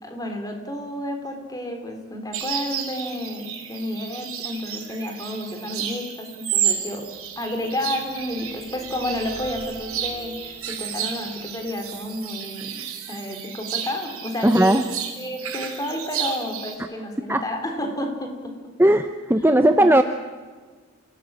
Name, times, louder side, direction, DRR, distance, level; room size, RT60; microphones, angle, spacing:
voice 1, 0.0-7.1 7.4-12.8 13.1-14.8 15.2-18.7 19.5-19.9, left 1 dB, 15° left, 4 dB, 3.7 m, -31 dB
sound 1, 2.3-16.8, right 9 dB, 90° right, 5.1 m, -32 dB
sound 2, 6.3-13.2, right 2 dB, 45° right, 2.7 m, -49 dB
voice 2, 14.4-14.8 16.8-16.9 17.3-17.4 18.8-20.0, right 1 dB, 10° right, 8 dB, 0.7 m, -17 dB
28.0 x 17.5 x 8.9 m, 1.4 s
head